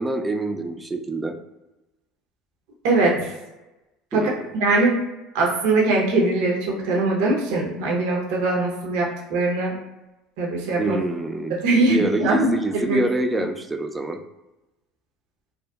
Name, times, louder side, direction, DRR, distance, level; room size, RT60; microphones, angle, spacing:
voice 1, 0.0-1.3 4.1-4.5 10.8-11.5 11.8-14.2, right 2 dB, 15° right, 5 dB, 0.3 m, -26 dB
voice 2, 2.8-3.3 4.1-5.0 5.3-9.7 10.4-11.0 11.6-13.0, right 2 dB, 70° right, -2 dB, 0.6 m, -21 dB
2.6 x 2.1 x 2.2 m, 1.0 s
hypercardioid pair, 80°, 0 cm